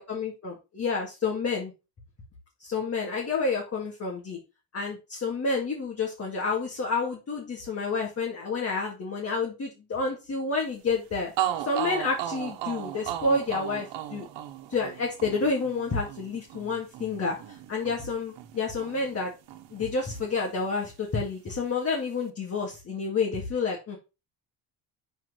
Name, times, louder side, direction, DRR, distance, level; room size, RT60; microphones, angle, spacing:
voice 1, 0.0-1.7 2.6-4.4 4.7-11.3 11.6-14.3 14.7-19.3 19.7-24.0, left 4 dB, 35° left, -1 dB, 2.1 m, -29 dB
sound 1, 11.0-11.1 11.4-19.2 19.5-20.6, right 12 dB, 85° right, 1.3 m, -36 dB
6.0 x 4.6 x 6.1 m, 0.28 s
cardioid pair, 140°, 43 cm